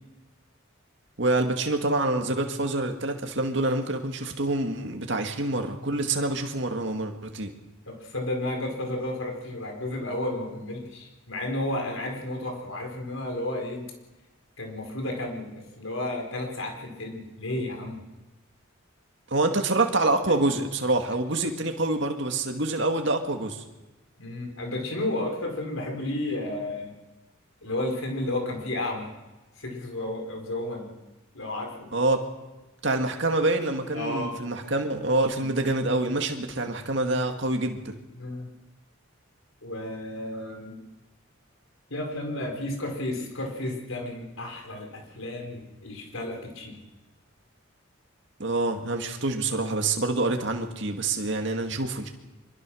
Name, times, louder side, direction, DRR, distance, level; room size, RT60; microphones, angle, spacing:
voice 1, 1.2-7.5 19.3-23.6 31.9-32.2 32.8-37.9 48.4-52.1, right 2 dB, 60° right, 4 dB, 2.2 m, -26 dB
voice 2, 7.8-13.9 14.6-18.0 24.2-26.9 27.6-29.1 29.6-30.9 31.3-31.9 33.9-34.3 38.1-38.5 39.6-40.8 41.9-46.8, left 1 dB, 80° left, 3 dB, 4.9 m, -32 dB
24.5 x 22.5 x 6.4 m, 1.1 s
head